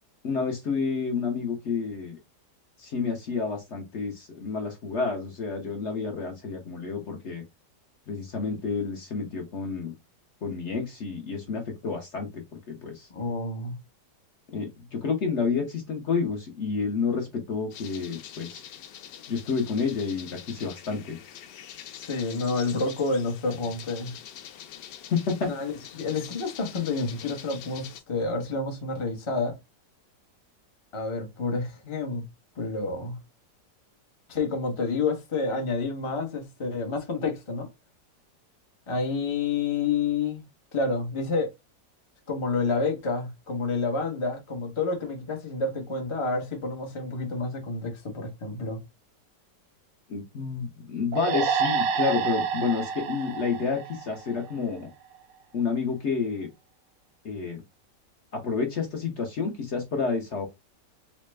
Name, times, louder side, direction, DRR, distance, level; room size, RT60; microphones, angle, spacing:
voice 1, 0.2-2.2 2.8-7.4 8.1-9.9 10.4-13.1 14.5-18.6 19.3-21.2 25.1-25.5 50.1-54.9 55.5-56.5 57.2-57.6 58.3-60.5, left 5 dB, 55° left, 0.8 m, -29 dB
voice 2, 13.1-13.8 22.0-24.1 25.5-29.6 30.9-32.3 32.6-33.2 34.3-37.7 38.9-40.4 40.7-41.5 42.3-48.8, left 3 dB, 35° left, 0.4 m, -29 dB
sound 1, 17.7-28.0, left 10 dB, 80° left, 1.2 m, -44 dB
sound 2, 51.1-54.6, right 6 dB, 85° right, 1.3 m, -28 dB
4.1 x 2.1 x 3.2 m
omnidirectional pair, 1.9 m